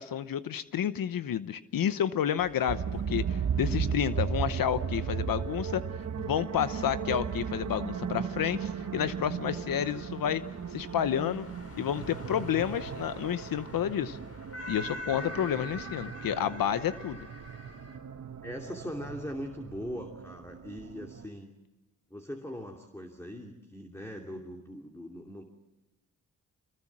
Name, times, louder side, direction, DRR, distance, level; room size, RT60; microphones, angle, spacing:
voice 1, 0.0-5.8 6.2-10.4 10.7-11.5 11.8-14.2 14.7-17.2, left 9 dB, 75° left, 13 dB, 0.9 m, -30 dB
sound 1, 2.4-18.0, left 1 dB, 45° left, 4.7 m, -47 dB
sound 2, 2.7-21.3, right 7 dB, 55° right, 1.3 m, -36 dB
voice 2, 18.4-21.5 22.1-25.5, equal, 10° left, 2 dB, 2.7 m, -41 dB
25.5 x 21.0 x 7.4 m, 1.1 s
cardioid pair, 85°, 34 cm